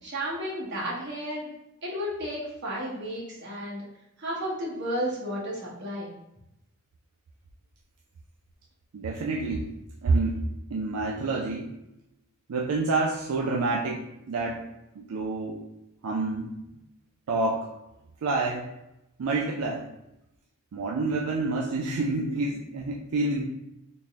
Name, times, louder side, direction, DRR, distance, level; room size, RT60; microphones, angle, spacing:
voice 1, 0.0-1.5 1.8-3.8 4.2-6.1, equal, 55° right, -6 dB, 1.2 m, -33 dB
voice 2, 8.9-9.7 10.0-10.4 10.7-11.7 12.5-14.7 15.0-15.6 16.0-16.5 17.3-17.7 18.2-18.7 19.2-19.9 20.7-23.4, right 3 dB, 80° right, -1 dB, 0.4 m, -28 dB
4.0 x 2.1 x 3.5 m, 0.88 s
head